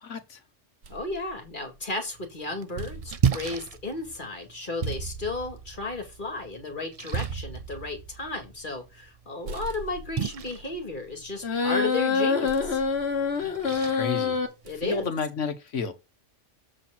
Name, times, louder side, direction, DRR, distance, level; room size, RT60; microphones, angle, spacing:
voice 1, 0.0-0.4 13.4-14.4 14.8-15.9, left 4 dB, 80° left, 1.6 m, -32 dB
sound 1, 0.8-2.1 2.5-9.2 9.4-11.7 12.4-13.9 14.6-15.1, right 5 dB, 65° right, 1.3 m, -40 dB
voice 2, 0.9-12.8 14.6-15.1, left 2 dB, 45° left, 2.4 m, -34 dB
Splash splatter, 2.1-15.1, right 7 dB, 50° right, 0.4 m, -36 dB
sound 2, 11.4-14.5, left 5 dB, 60° left, 1.6 m, -25 dB
7.6 x 4.5 x 5.9 m
omnidirectional pair, 1.2 m